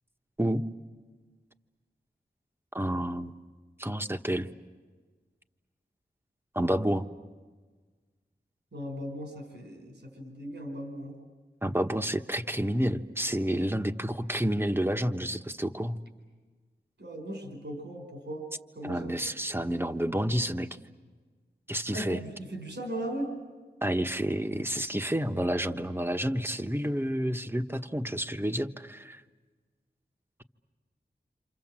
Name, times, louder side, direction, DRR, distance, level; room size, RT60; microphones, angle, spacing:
voice 1, 2.7-3.3 3.8-4.5 6.5-7.1 11.6-16.0 18.8-20.8 21.7-22.2 23.8-29.2, equal, 10° right, 6 dB, 1.3 m, -29 dB
voice 2, 8.7-11.2 17.0-18.4 18.7-19.1 21.9-23.3, equal, 85° right, 1 dB, 4.5 m, -38 dB
28.5 x 27.5 x 7.6 m, 1.4 s
wide cardioid pair, 60°, 18 cm